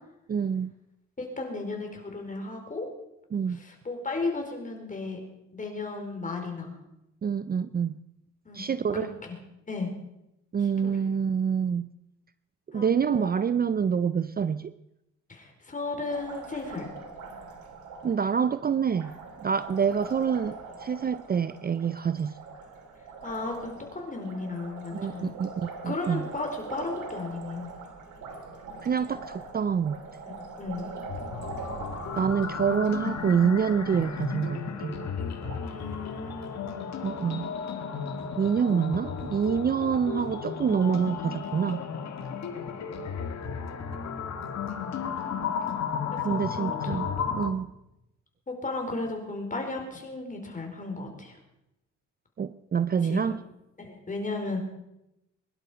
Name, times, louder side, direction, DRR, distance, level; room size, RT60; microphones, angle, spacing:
voice 1, 0.3-0.7 3.3-3.6 7.2-7.9 8.5-9.1 10.5-11.9 12.7-14.7 18.0-19.1 19.4-22.3 24.9-26.3 28.8-30.0 32.2-35.0 37.0-37.5 38.4-41.8 46.2-47.7 52.4-53.4, right 7 dB, 30° right, 14 dB, 0.5 m, -27 dB
voice 2, 1.2-2.9 3.5-5.2 5.5-6.8 8.4-8.6 8.9-9.1 9.7-9.9 10.6-10.9 12.7-13.4 15.3-16.9 23.2-25.4 25.8-27.7 30.3-30.9 35.6-36.7 43.7-44.5 46.2-47.5 48.5-51.4 53.0-53.4 53.8-54.6, left 3 dB, 25° left, 3 dB, 4.7 m, -35 dB
Liquid, 16.1-35.6, right 4 dB, 75° right, 3.0 m, -43 dB
sound 1, 31.1-47.5, left 6 dB, 60° left, 2.1 m, -34 dB
23.0 x 11.5 x 5.2 m, 0.89 s
cardioid pair, 90°, 30 cm